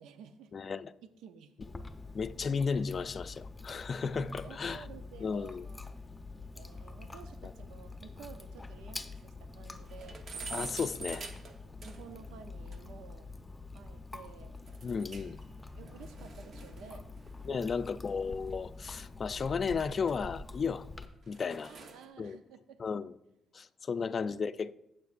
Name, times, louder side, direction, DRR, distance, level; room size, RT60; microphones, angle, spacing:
voice 1, 0.0-0.5 1.0-1.6 4.1-5.9 6.5-10.2 10.6-10.7 11.8-13.3 13.7-14.6 15.0-15.1 15.8-17.1 17.5-17.6 21.7-22.8 23.9-24.4, right 7 dB, 90° right, 0.6 m, -52 dB
voice 2, 0.5-0.9 2.1-4.8 5.2-5.6 10.5-11.3 14.8-15.4 17.5-20.9 21.3-21.7 22.2-22.4 22.8-23.1 23.5-24.8, left 5 dB, 45° left, 0.4 m, -34 dB
Chewing mastication, 1.6-21.1, left 3 dB, 15° left, 0.8 m, -46 dB
sound 1, 7.9-8.0 8.3-8.4 8.8-8.9 9.2-9.3 9.6-12.2 12.7-12.8 14.7-15.4 15.7-18.4 19.1-20.8 21.2-22.1, right 3 dB, 55° right, 1.1 m, -46 dB
sound 2, 15.5-16.7 17.2-17.9 19.8-19.9, equal, 35° right, 3.7 m, -62 dB
16.0 x 7.3 x 2.5 m
cardioid pair, 90°, 0 cm